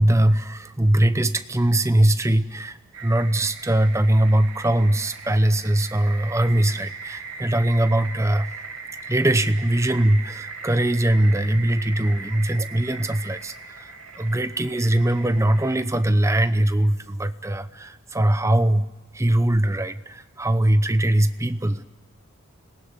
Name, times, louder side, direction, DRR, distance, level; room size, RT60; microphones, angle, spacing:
voice 1, 0.0-8.5 9.1-13.8 14.2-18.9 19.1-21.8, right 1 dB, 15° right, 11 dB, 0.8 m, -21 dB
sound 1, 2.9-15.8, right 4 dB, 70° right, 2.9 m, -39 dB
26.0 x 18.5 x 9.7 m, 1.1 s
head